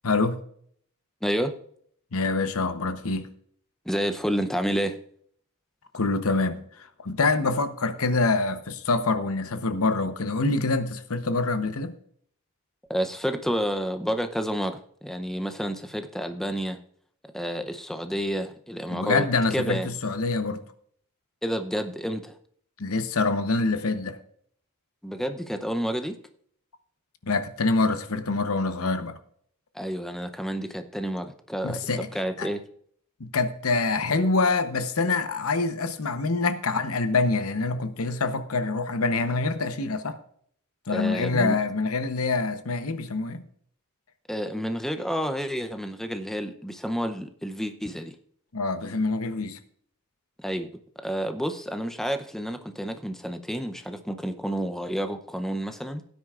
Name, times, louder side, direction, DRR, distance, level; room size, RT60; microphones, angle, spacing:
voice 1, 0.0-0.4 2.1-3.3 5.9-11.9 18.9-20.6 22.8-24.2 27.2-29.2 31.6-32.1 32.4-32.5 33.2-40.2 40.9-43.4 48.5-49.6, left 3 dB, 75° left, 0.9 m, -25 dB
voice 2, 1.2-1.5 3.9-5.0 12.9-16.8 17.3-19.9 21.4-22.4 25.0-26.1 29.7-31.8 32.1-32.6 40.9-41.6 44.3-48.2 50.4-50.7 51.0-56.0, equal, ahead, 0.6 m, -30 dB
17.0 x 9.4 x 2.4 m
head